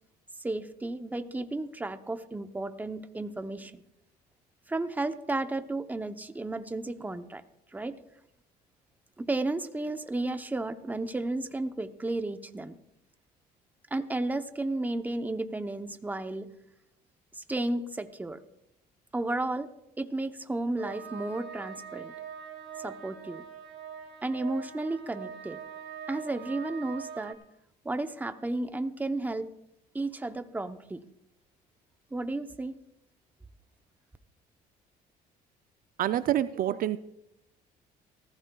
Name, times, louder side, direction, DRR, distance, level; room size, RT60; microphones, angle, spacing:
voice 1, 0.4-3.8 4.7-7.4 7.7-8.0 9.2-12.8 13.9-16.5 17.3-18.4 19.1-19.7 20.0-22.1 22.8-23.4 24.2-25.6 26.1-27.4 27.8-29.5 29.9-31.0 32.1-32.8, right 2 dB, 10° right, 9 dB, 0.7 m, -33 dB
sound 1, 20.8-27.3, right 8 dB, 85° right, 2.0 m, -43 dB
voice 2, 36.0-37.0, right 12 dB, 60° right, 13 dB, 0.4 m, -27 dB
18.5 x 14.5 x 2.3 m, 0.82 s
cardioid pair, 110°, 17 cm